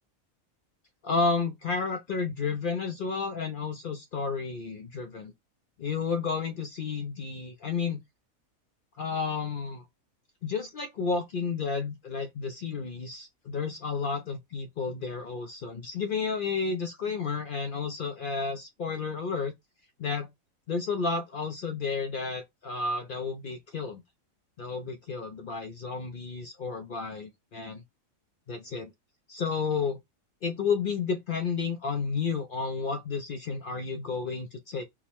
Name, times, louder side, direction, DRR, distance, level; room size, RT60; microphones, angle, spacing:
voice 1, 1.0-5.3 5.8-8.0 9.0-9.9 10.4-19.5 20.0-20.3 20.7-24.0 24.6-27.8 28.5-28.9 29.3-30.0 30.4-34.8, left 5 dB, 60° left, 0.5 m, -31 dB
3.6 x 2.0 x 4.3 m
omnidirectional pair, 1.4 m